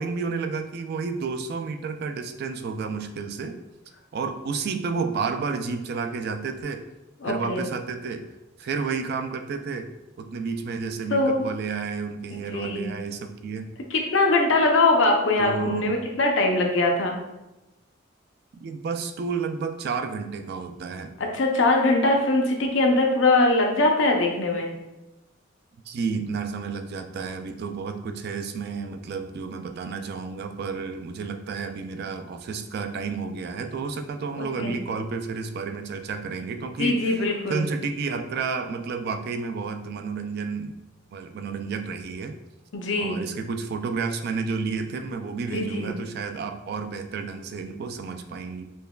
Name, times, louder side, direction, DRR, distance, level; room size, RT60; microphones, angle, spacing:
voice 1, 0.0-3.6 4.1-6.8 7.2-8.3 8.6-9.9 10.2-13.7 15.4-16.0 18.6-21.1 25.9-37.1 37.5-40.7 41.1-42.3 43.0-48.6, right 5 dB, 55° right, 7 dB, 0.3 m, -31 dB
voice 2, 7.2-7.6 11.1-11.4 12.5-12.9 13.9-17.2 21.2-24.7 34.4-34.7 36.8-37.6 42.7-43.2 45.5-46.0, left 2 dB, 70° left, 1 dB, 0.6 m, -22 dB
5.3 x 2.2 x 2.3 m, 0.98 s
head